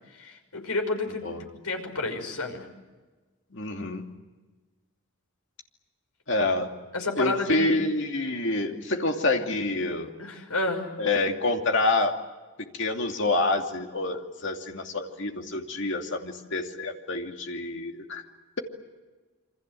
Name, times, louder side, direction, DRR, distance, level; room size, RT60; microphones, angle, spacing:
voice 1, 0.1-1.2 1.6-2.7 6.9-7.8 10.2-10.9, left 2 dB, 90° left, 5 dB, 5.8 m, -30 dB
voice 2, 1.2-1.6 3.5-4.1 6.3-6.7 7.2-10.1 11.0-12.2 12.7-18.2, left 2 dB, 55° left, 3 dB, 2.7 m, -27 dB
28.0 x 25.5 x 7.8 m, 1.3 s
head